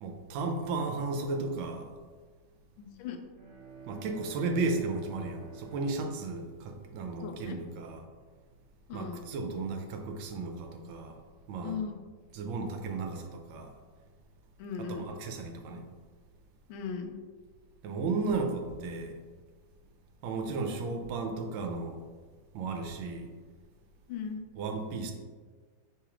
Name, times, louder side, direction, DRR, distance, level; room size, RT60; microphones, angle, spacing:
voice 1, 0.0-1.9 3.8-8.0 8.9-11.2 11.5-11.8 12.3-13.7 14.8-15.8 17.8-19.1 20.2-22.0 22.5-23.3 24.5-25.1, right 3 dB, 85° right, 4 dB, 1.4 m, -34 dB
voice 2, 2.8-3.2 7.2-7.6 8.9-9.2 11.6-12.0 14.6-15.0 16.7-17.1 24.1-24.4, left 6 dB, 85° left, 5 dB, 1.4 m, -37 dB
Bowed string instrument, 3.3-7.9, right 5 dB, 65° right, 1.5 m, -50 dB
4.8 x 3.7 x 3.0 m, 1.5 s
omnidirectional pair, 2.2 m